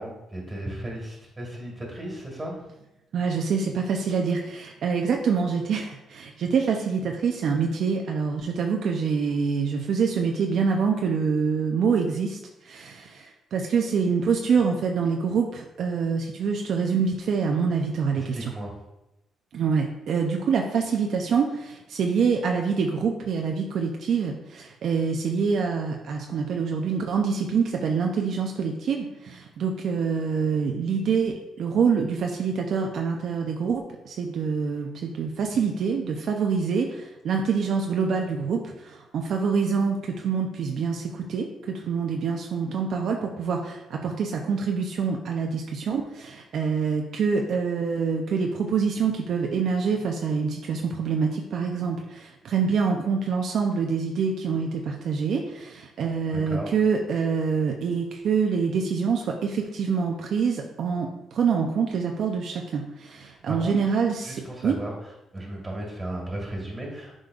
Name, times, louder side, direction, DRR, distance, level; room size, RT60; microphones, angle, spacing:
voice 1, 0.0-2.6 18.1-18.7 56.3-56.8 63.2-63.8 64.2-67.2, right 1 dB, 20° right, -1 dB, 2.3 m, -35 dB
voice 2, 3.1-18.5 19.5-64.8, right 5 dB, 65° right, 2 dB, 0.6 m, -26 dB
7.7 x 5.1 x 2.4 m, 0.93 s
cardioid pair, 90°, 0 cm